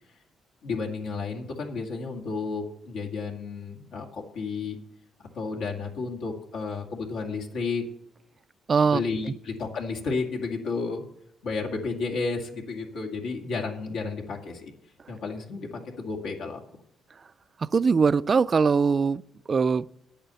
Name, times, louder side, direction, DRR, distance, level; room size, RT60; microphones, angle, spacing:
voice 1, 0.6-4.8 5.3-7.8 8.9-11.0 11.4-14.7 15.1-16.6, left 4 dB, 80° left, 2.1 m, -32 dB
voice 2, 8.7-9.0 17.7-19.2 19.5-19.8, right 5 dB, 40° right, 0.3 m, -21 dB
10.5 x 8.7 x 6.9 m
cardioid pair, 90°, 0 cm